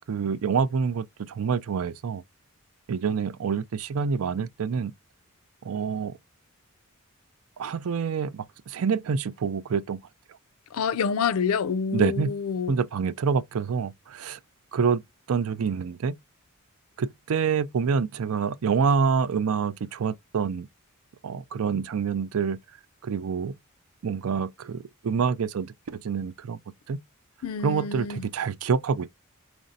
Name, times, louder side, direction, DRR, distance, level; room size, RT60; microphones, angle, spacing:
voice 1, 0.1-2.2 2.9-4.9 5.6-6.2 7.6-10.0 11.9-12.3 12.7-14.4 14.7-15.0 15.3-16.1 17.0-20.7 21.2-22.6 23.0-23.5 24.0-26.6 26.9-27.0 27.6-29.1, right 6 dB, 70° right, 0.4 m, -27 dB
voice 2, 10.7-12.8 27.4-28.2, left 6 dB, 70° left, 0.4 m, -27 dB
5.2 x 3.1 x 2.6 m
head